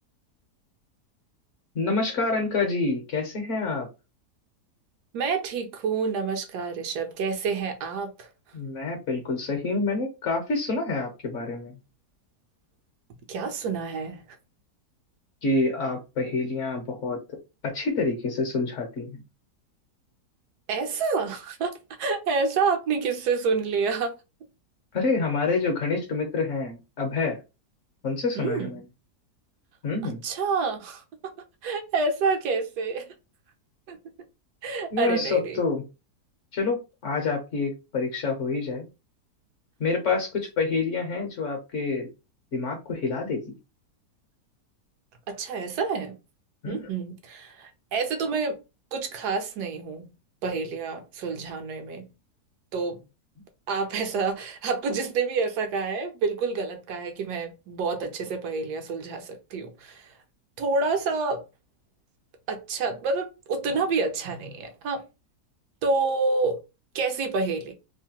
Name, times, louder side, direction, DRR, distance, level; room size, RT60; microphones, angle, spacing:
voice 1, 1.7-3.9 8.5-11.7 15.4-17.2 17.6-19.2 24.9-27.4 28.0-28.8 29.8-30.2 34.9-35.8 36.5-38.8 39.8-42.1 42.5-43.5 46.6-46.8, left 3 dB, 60° left, 0.9 m, -27 dB
voice 2, 5.1-8.3 13.3-14.2 20.7-24.1 28.4-28.7 30.2-31.3 31.6-33.1 33.9-34.0 34.6-35.6 45.3-46.2 46.7-48.6 48.9-50.1 50.4-52.1 52.7-53.0 53.7-60.1 60.6-61.4 62.5-65.0 65.8-66.6 66.9-67.7, right 4 dB, 80° right, 1.2 m, -28 dB
3.1 x 2.1 x 2.8 m
omnidirectional pair, 1.8 m